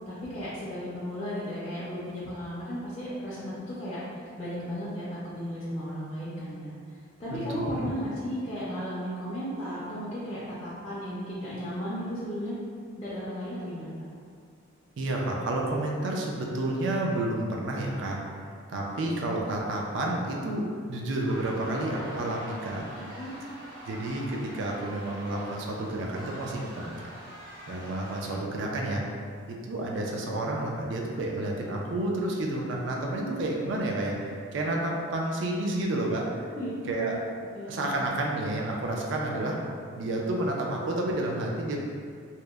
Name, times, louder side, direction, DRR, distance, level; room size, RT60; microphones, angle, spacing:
voice 1, 0.1-6.7 7.2-12.6 13.0-14.1 22.9-23.5 33.2-33.3 36.5-37.2 37.5-38.1, equal, 30° left, -10 dB, 0.4 m, -35 dB
voice 2, 7.3-7.7 15.0-18.3 18.7-22.8 23.9-26.9 27.7-29.0 29.5-36.5 36.9-37.2 37.7-39.6 39.9-41.8, right 1 dB, 65° right, -1 dB, 0.4 m, -30 dB
sound 1, 21.2-28.3, right 1 dB, 80° right, 0.9 m, -45 dB
2.8 x 2.0 x 2.2 m, 2.2 s
head